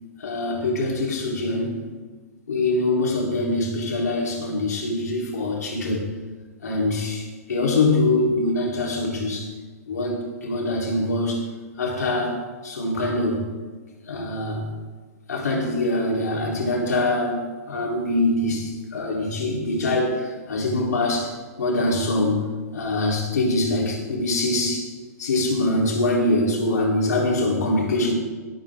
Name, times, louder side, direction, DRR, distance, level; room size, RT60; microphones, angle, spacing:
voice 1, 0.2-1.9 2.5-6.1 6.6-9.5 9.9-11.5 11.8-13.5 14.1-14.7 15.3-24.9 25.2-28.1, left 2 dB, 85° left, -2 dB, 3.9 m, -24 dB
17.5 x 9.2 x 3.8 m, 1.4 s
hypercardioid pair, 155°, 9 cm